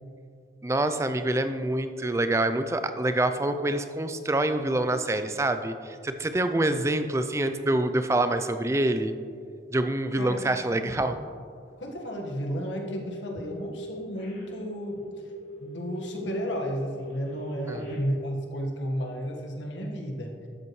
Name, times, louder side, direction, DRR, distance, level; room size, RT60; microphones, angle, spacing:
voice 1, 0.6-9.1 9.7-11.2 17.7-17.8, right 1 dB, 15° right, 9 dB, 0.4 m, -26 dB
voice 2, 10.2-11.0 11.8-15.0 15.6-20.3, equal, 85° left, 1 dB, 1.5 m, -33 dB
sound 1, 12.7-13.3 13.6-18.0, equal, 35° left, 2.2 m, -40 dB
12.5 x 8.0 x 3.1 m, 2.3 s
head